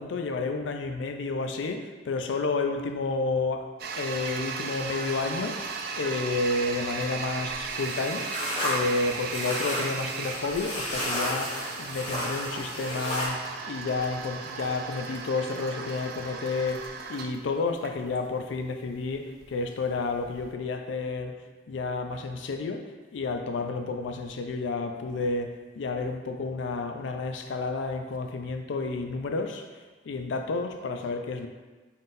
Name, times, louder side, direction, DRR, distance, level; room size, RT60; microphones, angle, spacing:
voice 1, 0.0-3.7 3.9-21.4 21.7-31.5, left 3 dB, 85° left, 6 dB, 0.4 m, -31 dB
Toilet flush, 3.8-20.5, right 5 dB, 55° right, 0.4 m, -36 dB
sound 1, 7.6-13.3, equal, 35° left, 1.3 m, -33 dB
4.0 x 3.7 x 2.6 m, 1.3 s
head